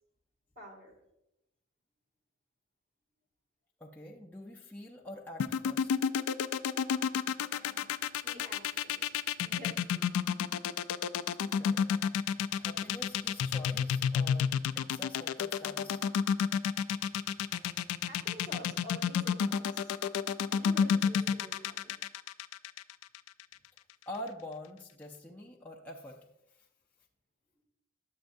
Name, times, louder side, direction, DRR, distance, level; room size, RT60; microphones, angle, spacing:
voice 1, 0.6-0.9 7.5-9.1 9.4-10.1 18.0-19.9 20.5-22.0, left 1 dB, 40° right, -1 dB, 2.4 m, -49 dB
voice 2, 3.8-5.9 11.6-11.8 12.5-16.0 24.1-26.2 26.6-26.7, left 1 dB, 10° left, -2 dB, 0.5 m, -46 dB
sound 1, 5.4-23.5, left 7 dB, 80° left, 0.3 m, -30 dB
10.0 x 7.3 x 2.6 m, 0.86 s
head